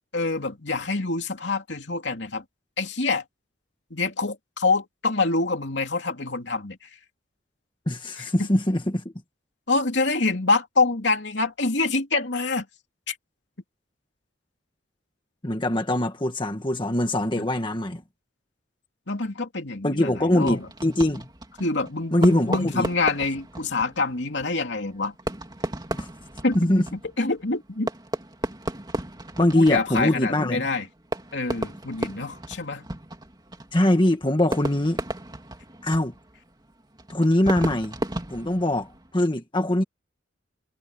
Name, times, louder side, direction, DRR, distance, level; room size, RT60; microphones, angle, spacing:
voice 1, 0.1-2.4 2.8-3.2 3.9-6.9 8.4-8.5 9.7-12.7 13.1-13.2 17.4-17.5 19.1-20.7 21.6-25.1 26.4-26.7 27.2-27.9 29.5-30.9 31.3-32.9, left 3 dB, 65° left, 3.0 m, -26 dB
voice 2, 7.9-9.0 15.4-18.0 19.8-21.3 22.1-22.9 26.0-26.1 26.5-26.9 29.4-30.7 33.7-35.0 35.8-36.1 37.1-38.0 38.3-39.8, left 1 dB, 25° left, 1.7 m, -22 dB
Fireworks, 20.4-39.2, right 1 dB, 20° right, 3.0 m, -35 dB
head